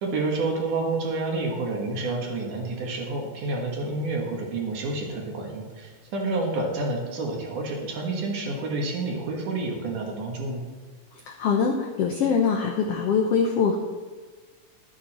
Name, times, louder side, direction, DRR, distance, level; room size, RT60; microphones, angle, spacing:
voice 1, 0.0-10.6, right 3 dB, 70° right, 0 dB, 3.1 m, -29 dB
voice 2, 11.1-13.8, left 6 dB, 85° left, 1 dB, 1.3 m, -23 dB
12.0 x 9.6 x 4.3 m, 1.4 s
omnidirectional pair, 3.9 m